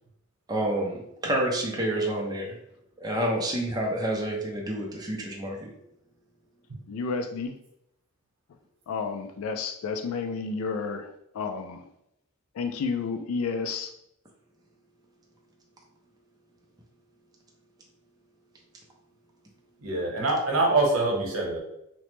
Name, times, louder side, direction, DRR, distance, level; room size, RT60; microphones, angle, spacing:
voice 1, 0.5-2.6 3.0-5.7, right 1 dB, 20° right, -1 dB, 0.5 m, -28 dB
voice 2, 6.9-7.5 8.9-11.8 12.5-13.9, left 4 dB, 70° left, 7 dB, 0.3 m, -31 dB
voice 3, 19.8-21.6, right 2 dB, 65° right, -1 dB, 1.0 m, -24 dB
2.9 x 2.0 x 3.1 m, 0.79 s
head